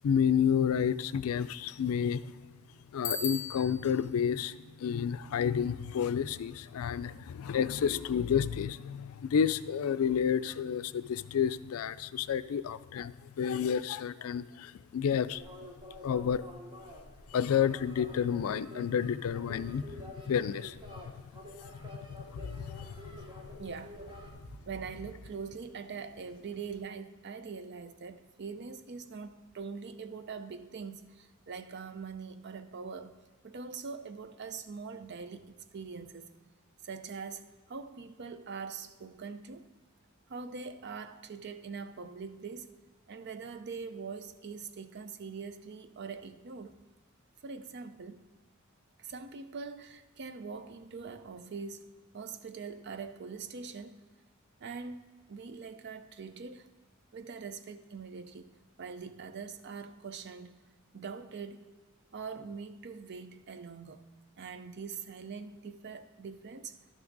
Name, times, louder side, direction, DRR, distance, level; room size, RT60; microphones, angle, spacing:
voice 1, 0.0-2.3 2.9-15.4 16.0-16.4 17.3-20.8 21.8-21.9 22.2-23.6, left 8 dB, 90° left, 0.4 m, -30 dB
Bicycle bell, 3.0-4.0, left 6 dB, 60° left, 0.7 m, -36 dB
sound 1, 15.3-24.3, left 1 dB, 20° right, 1.1 m, -48 dB
voice 2, 23.6-24.2 24.5-33.1 33.4-36.4 36.8-39.7 40.3-42.8 43.1-46.8 47.4-48.2 49.0-51.9 52.1-54.1 54.6-56.7 57.1-58.5 58.8-60.6 60.9-61.7 62.1-64.0 64.4-66.8, right 5 dB, 55° right, 0.5 m, -43 dB
11.5 x 6.0 x 3.9 m
head